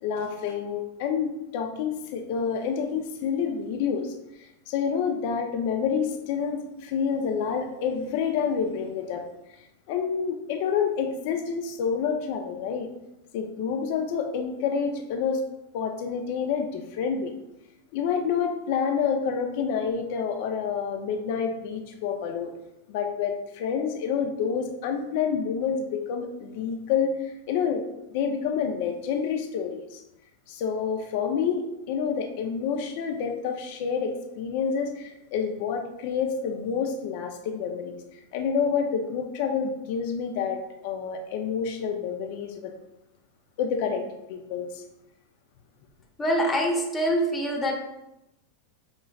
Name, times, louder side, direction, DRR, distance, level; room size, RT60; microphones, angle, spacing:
voice 1, 0.0-9.2 9.9-12.9 13.3-15.4 15.7-17.3 17.9-22.5 22.9-27.8 28.1-30.0 30.5-38.0 38.3-42.7 43.6-44.8, left 6 dB, 60° left, 5 dB, 0.5 m, -28 dB
voice 2, 46.2-47.7, equal, 20° left, 0 dB, 1.0 m, -24 dB
5.1 x 3.0 x 2.3 m, 0.90 s
hypercardioid pair, 100°, 0 cm